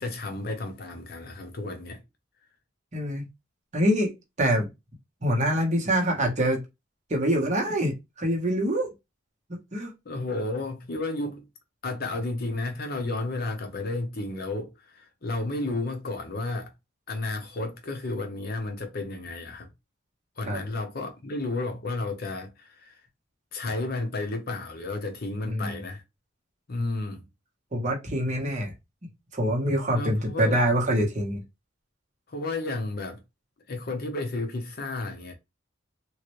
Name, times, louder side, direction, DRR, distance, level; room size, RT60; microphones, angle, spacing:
voice 1, 0.0-2.0 10.0-11.5 11.8-16.7 17.1-19.7 20.4-23.0 23.5-26.0 26.7-27.3 29.9-30.6 32.3-33.2 33.7-35.3, left 2 dB, 50° left, 0.7 m, -32 dB
voice 2, 2.9-3.3 3.7-4.1 4.4-4.7 5.2-6.6 7.1-8.9 9.5-9.9 20.5-20.6 25.5-25.8 27.7-28.7 29.3-31.4, equal, 35° right, 1.0 m, -25 dB
3.1 x 2.5 x 3.0 m
head